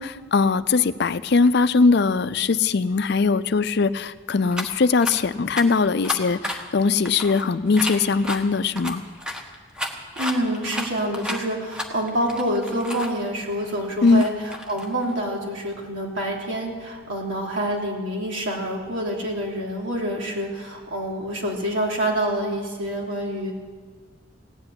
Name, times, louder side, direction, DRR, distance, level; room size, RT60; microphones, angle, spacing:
voice 1, 0.0-9.0 14.0-14.2, left 4 dB, 60° left, 14 dB, 0.5 m, -20 dB
sound 1, 4.5-4.7 5.0-5.1 5.6-5.7 6.0-8.4 8.8-13.1 13.5-15.1, left 1 dB, 5° right, 1.2 m, -32 dB
voice 2, 10.1-23.5, right 1 dB, 80° right, -1 dB, 3.2 m, -27 dB
16.5 x 8.1 x 9.7 m, 1.5 s
head